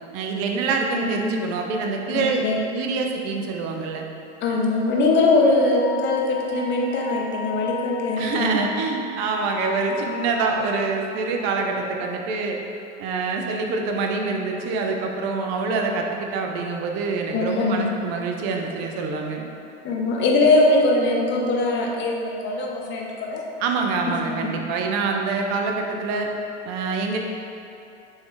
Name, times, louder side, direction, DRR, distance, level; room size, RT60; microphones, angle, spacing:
voice 1, 0.1-2.4 2.7-4.1 8.2-12.6 13.0-19.4 23.6-26.3 26.7-27.2, right 4 dB, 50° right, 2 dB, 0.5 m, -25 dB
voice 2, 2.1-2.6 4.4-8.6 17.3-17.9 19.8-23.4 24.4-24.5, left 2 dB, 30° left, -1 dB, 0.6 m, -21 dB
Wind instrument woodwind instrument, 5.6-10.4, left 7 dB, 55° left, 0.9 m, -34 dB
3.4 x 2.7 x 3.3 m, 2.7 s
hypercardioid pair, 95°, 37 cm